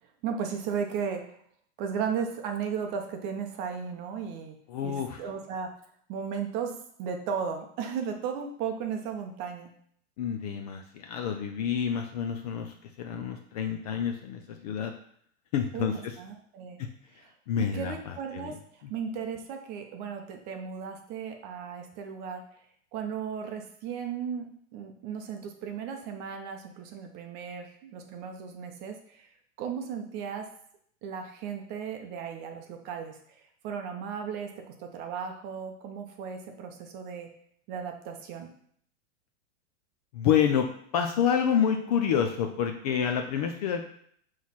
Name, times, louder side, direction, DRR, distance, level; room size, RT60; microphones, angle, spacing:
voice 1, 0.2-1.4 1.8-4.6 4.8-5.7 6.1-6.7 7.0-9.7 15.7-15.9 16.2-16.8 17.1-17.3 17.6-18.6 18.9-22.4 22.9-29.3 29.6-30.5 31.0-33.2 33.6-37.3 37.7-38.5, right 7 dB, 25° right, 4 dB, 0.7 m, -35 dB
voice 2, 4.7-5.2 10.2-14.9 15.5-16.2 16.8-16.9 17.5-18.6 40.1-43.9, left 8 dB, 35° left, 5 dB, 0.4 m, -28 dB
6.2 x 3.2 x 5.6 m, 0.64 s
supercardioid pair, 160°, 37 cm